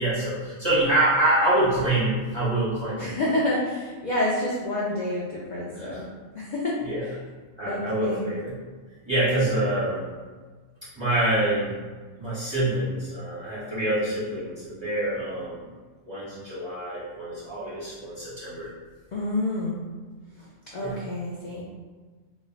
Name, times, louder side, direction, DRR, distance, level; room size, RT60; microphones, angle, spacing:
voice 1, 0.0-3.1 5.7-6.1 6.8-7.1 7.6-8.5 9.0-10.0 10.9-11.7 12.2-15.7 16.0-18.7 20.8-21.0, right 1 dB, 25° right, -11 dB, 0.9 m, -26 dB
voice 2, 3.0-6.1 6.3-7.1 7.7-8.3 9.3-9.4 19.1-19.8 20.7-21.6, left 1 dB, 85° left, -5 dB, 0.4 m, -28 dB
2.4 x 2.1 x 3.7 m, 1.4 s
omnidirectional pair, 1.3 m